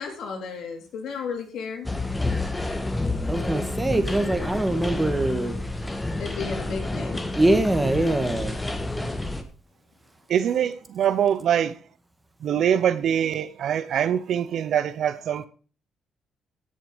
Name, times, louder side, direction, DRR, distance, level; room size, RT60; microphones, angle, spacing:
voice 1, 0.0-1.9 6.2-7.3 8.0-8.1, left 5 dB, 75° left, 3.8 m, -34 dB
sound 1, 1.9-9.4, left 2 dB, 10° left, 1.8 m, -29 dB
voice 2, 3.3-5.6 7.3-8.6, right 1 dB, 15° right, 1.9 m, -23 dB
voice 3, 10.3-11.7 12.4-15.5, right 9 dB, 65° right, 0.9 m, -23 dB
17.0 x 6.7 x 5.2 m
cardioid pair, 90°, 0 cm